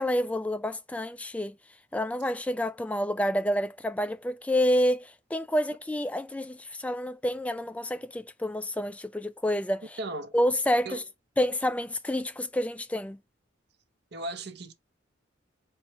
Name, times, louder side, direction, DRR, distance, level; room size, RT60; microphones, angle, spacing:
voice 1, 0.0-1.6 1.9-10.0 10.3-11.0 11.4-13.2, equal, 5° left, 0.3 m, -28 dB
voice 2, 10.0-10.3 10.9-11.0 14.1-14.7, right 2 dB, 55° right, 0.7 m, -36 dB
4.5 x 2.3 x 4.0 m
head